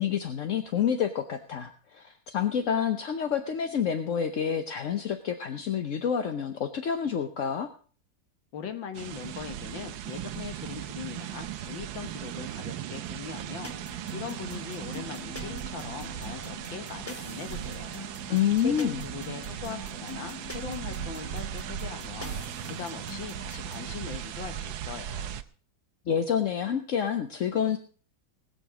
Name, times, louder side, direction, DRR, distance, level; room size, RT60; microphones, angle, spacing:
voice 1, 0.0-7.7 18.3-19.0 26.1-27.8, left 8 dB, 55° left, 7 dB, 0.9 m, -28 dB
voice 2, 8.5-18.1 18.6-22.4 22.7-25.4, left 7 dB, 75° left, 8 dB, 2.0 m, -40 dB
sound 1, 8.9-25.4, right 10 dB, 80° right, 1.5 m, -38 dB
sound 2, 13.6-23.9, equal, 10° left, 0.9 m, -44 dB
19.5 x 6.8 x 6.1 m, 0.43 s
omnidirectional pair, 2.1 m